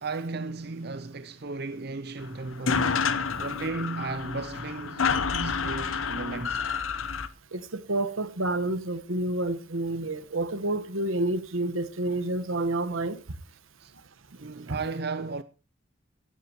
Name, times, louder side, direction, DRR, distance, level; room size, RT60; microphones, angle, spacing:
voice 1, 0.0-3.1 3.4-6.7 13.8-13.9 14.4-15.4, right 3 dB, 50° right, 0.6 m, -35 dB
sound 1, 2.2-2.3 2.5-7.3, left 5 dB, 75° left, 0.9 m, -29 dB
voice 2, 7.5-13.2 14.7-14.8, right 2 dB, 80° right, 1.3 m, -29 dB
15.5 x 12.5 x 3.0 m
head